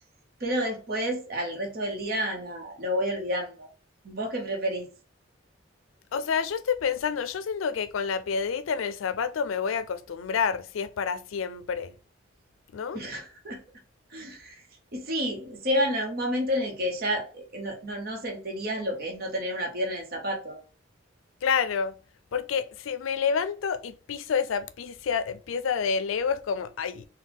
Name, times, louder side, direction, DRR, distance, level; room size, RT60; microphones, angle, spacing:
voice 1, 0.4-3.7 4.0-4.9 12.9-13.6 14.1-14.6 14.9-20.6, equal, 50° right, 0.9 m, -30 dB
voice 2, 6.1-11.9 12.7-13.0 21.4-22.0 22.3-27.1, left 6 dB, 85° left, 0.4 m, -28 dB
4.0 x 2.2 x 3.5 m
head